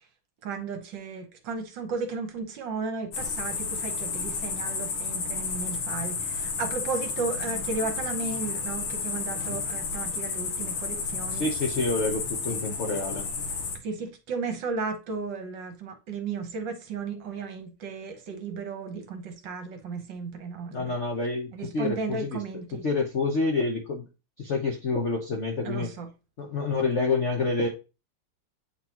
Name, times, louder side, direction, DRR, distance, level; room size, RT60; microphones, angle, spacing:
voice 1, 0.4-11.5 13.8-20.9 21.5-22.8 25.6-26.1, right 4 dB, 65° right, 1.4 m, -34 dB
sound 1, 3.1-13.8, left 5 dB, 80° left, 2.0 m, -32 dB
voice 2, 11.3-13.2 20.7-22.4 22.7-24.0 24.4-25.9 26.4-27.7, left 3 dB, 60° left, 0.7 m, -28 dB
8.2 x 4.0 x 2.9 m
omnidirectional pair, 2.4 m